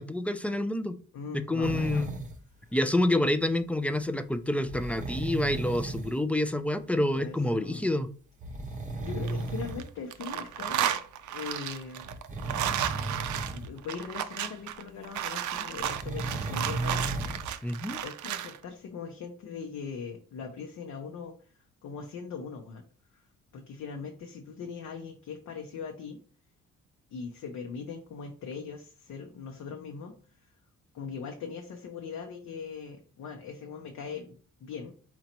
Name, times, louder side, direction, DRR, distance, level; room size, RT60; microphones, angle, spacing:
voice 1, 0.0-1.0 1.3-2.1 2.7-8.1 17.6-18.0, left 1 dB, 5° left, 11 dB, 0.3 m, -28 dB
voice 2, 1.1-2.1 7.1-7.9 8.5-11.0 11.3-12.1 13.4-17.4 18.0-21.5 21.8-22.8 23.1-23.3 23.5-26.2 27.1-30.5 30.9-34.9, left 5 dB, 65° left, 2 dB, 0.8 m, -40 dB
sound 1, 1.6-2.3 4.6-6.1 7.5-7.6 8.4-9.8 10.5-10.6 12.0-13.7 14.0-14.1 15.8-17.5 18.0-18.1, right 2 dB, 25° right, 0.7 m, -35 dB
sound 2, 9.1-9.8 10.1-18.6, right 11 dB, 75° right, 0.5 m, -33 dB
4.5 x 3.9 x 2.9 m, 0.42 s
cardioid pair, 90°, 30 cm